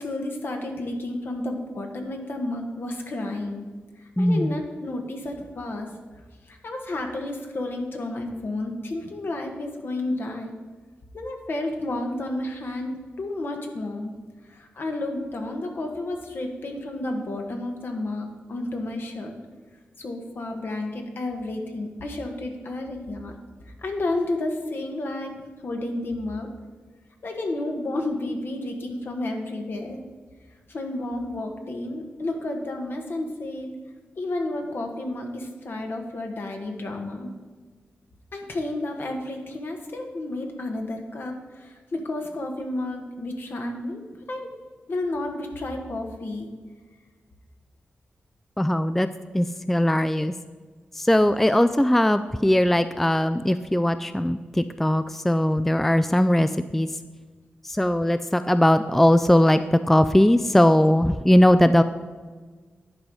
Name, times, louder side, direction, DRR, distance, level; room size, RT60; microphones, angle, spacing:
voice 1, 0.0-3.7 4.0-5.9 6.4-10.5 11.1-14.1 14.4-19.3 20.0-23.4 23.6-25.4 25.6-26.5 27.2-30.0 30.7-33.7 34.2-37.3 38.3-44.0 44.3-44.5 44.9-46.5, left 2 dB, 60° left, 3 dB, 1.5 m, -31 dB
voice 2, 4.2-4.6 48.6-49.1 49.3-50.3 50.9-56.9 57.6-61.8, left 1 dB, 5° left, 12 dB, 0.3 m, -20 dB
11.0 x 4.8 x 5.4 m, 1.4 s
cardioid pair, 65°, 4 cm